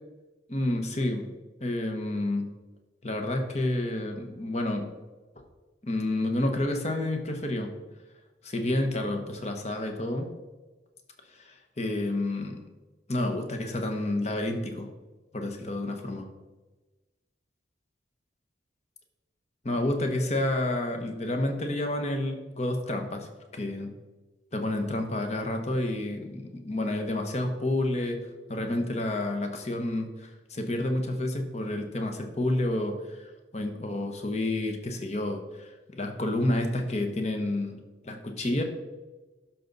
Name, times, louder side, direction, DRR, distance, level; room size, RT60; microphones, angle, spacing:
voice 1, 0.5-1.3 1.6-2.5 3.0-4.9 5.8-7.7 8.4-10.3 11.3-12.7 13.1-14.9 15.3-16.3 19.6-23.9 24.5-37.8 38.0-38.6, left 1 dB, 40° left, 5 dB, 1.2 m, -30 dB
12.0 x 6.0 x 4.0 m, 1.2 s
head